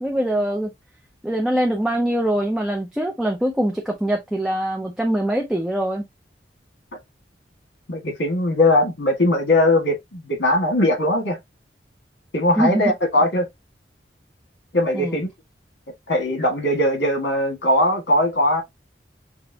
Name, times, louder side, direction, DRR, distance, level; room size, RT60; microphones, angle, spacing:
voice 1, 0.0-0.7 1.2-6.0 12.6-12.9 14.9-15.2, right 1 dB, 5° right, 0.6 m, -23 dB
voice 2, 7.9-11.4 12.3-13.5 14.7-15.3 16.1-18.6, left 1 dB, 75° left, 1.7 m, -20 dB
6.1 x 2.2 x 2.7 m
head